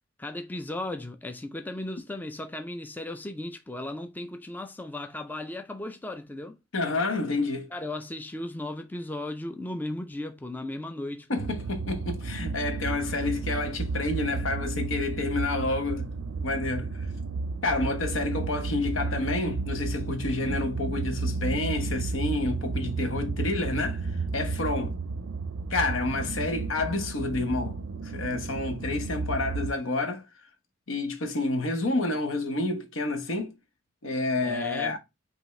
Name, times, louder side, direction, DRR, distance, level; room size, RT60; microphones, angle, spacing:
voice 1, 0.2-6.6 7.7-11.3 34.4-35.0, left 1 dB, 10° left, 0.3 m, -36 dB
voice 2, 6.7-7.7 11.3-16.1 16.4-16.9 17.6-24.0 24.3-25.0 25.7-27.8 28.0-30.2 30.9-33.5 34.0-35.0, left 2 dB, 85° left, 1.0 m, -29 dB
sound 1, 11.4-29.7, right 3 dB, 80° right, 0.4 m, -32 dB
5.5 x 2.7 x 3.0 m
head